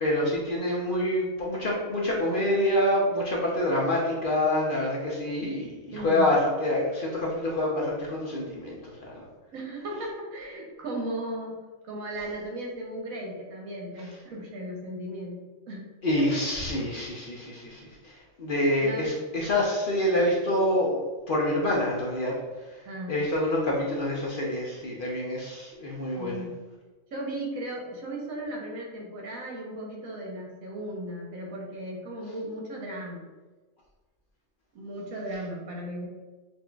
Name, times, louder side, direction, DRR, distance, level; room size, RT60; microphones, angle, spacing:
voice 1, 0.0-9.1 16.0-21.0 21.3-22.3 23.1-26.4, left 1 dB, 50° left, -3 dB, 0.6 m, -27 dB
voice 2, 5.9-6.3 9.5-11.6 11.9-15.9 16.2-16.4 18.8-19.2 22.9-23.3 26.2-26.6 27.1-33.2 34.7-36.1, right 1 dB, 85° right, -1 dB, 1.3 m, -36 dB
5.8 x 2.6 x 2.3 m, 1.3 s
omnidirectional pair, 1.4 m